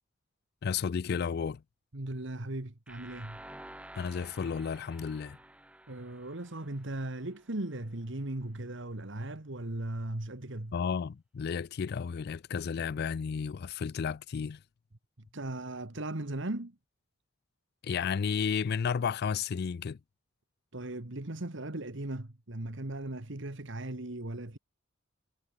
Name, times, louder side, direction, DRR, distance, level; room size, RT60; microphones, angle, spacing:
voice 1, 0.6-1.6 3.9-5.4 10.7-14.6 17.8-20.0, left 6 dB, 55° left, 0.4 m, -32 dB
voice 2, 1.9-3.4 5.9-10.7 15.3-16.8 20.7-24.6, right 1 dB, 65° right, 1.9 m, -38 dB
sound 1, 2.9-7.7, right 1 dB, 5° right, 1.3 m, -51 dB
head